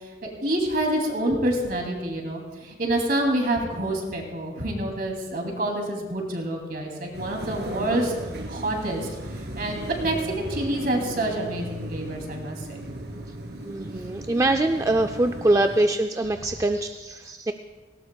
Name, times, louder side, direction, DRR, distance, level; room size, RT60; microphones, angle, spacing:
voice 1, 0.4-8.1 8.5-9.1 9.6-12.8, right 1 dB, 55° right, 1 dB, 2.7 m, -27 dB
sound 1, 7.1-15.8, right 1 dB, 70° right, 2.3 m, -36 dB
voice 2, 13.6-17.5, right 2 dB, 20° right, 5 dB, 0.3 m, -23 dB
19.0 x 17.5 x 2.3 m, 1.3 s
head